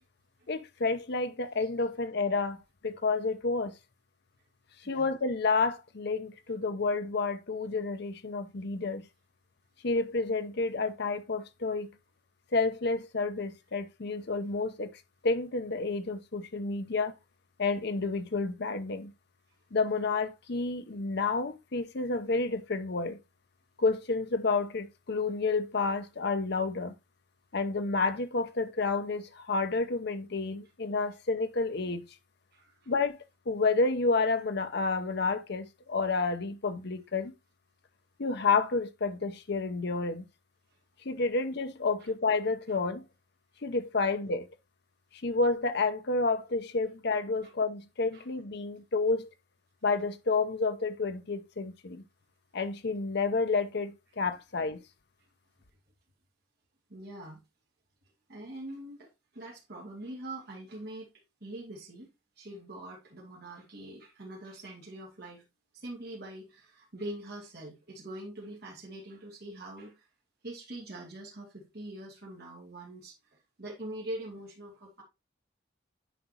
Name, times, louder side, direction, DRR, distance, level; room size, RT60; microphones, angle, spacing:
voice 1, 0.5-2.6 2.8-3.7 4.8-9.0 9.8-11.9 12.5-14.9 15.2-17.1 17.6-19.1 19.7-23.2 23.8-26.9 27.5-32.0 32.9-33.2 33.5-37.3 38.2-40.2 41.0-43.0 43.6-44.5 45.2-49.3 49.8-52.0 52.5-54.8, left 3 dB, 60° left, 0.8 m, -30 dB
voice 2, 32.5-32.9 42.0-42.1 44.0-44.1 48.1-48.2 56.9-57.4 58.3-61.1 61.4-62.1 62.4-65.4 65.7-70.1 70.4-75.0, right 1 dB, 60° right, 2.3 m, -43 dB
9.2 x 5.0 x 2.9 m
head